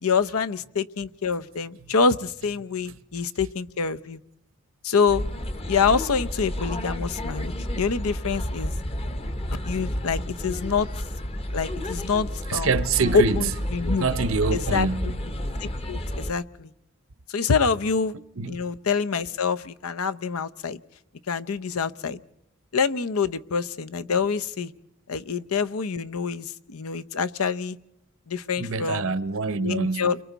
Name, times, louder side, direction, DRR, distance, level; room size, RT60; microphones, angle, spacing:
voice 1, 0.0-4.2 4.8-5.3 5.7-8.7 9.7-10.9 11.5-12.7 13.1-14.1 14.5-15.1 15.6-16.7 17.3-18.2 18.5-20.8 21.3-22.2 22.7-24.7 25.1-27.8 28.3-29.1 29.5-30.2, left 5 dB, 90° left, 0.7 m, -26 dB
sound 1, 5.1-16.3, equal, 30° left, 0.8 m, -31 dB
voice 2, 12.5-13.5 14.0-15.2 18.4-18.6 28.6-30.2, right 4 dB, 70° right, 0.8 m, -25 dB
29.5 x 23.5 x 4.0 m
head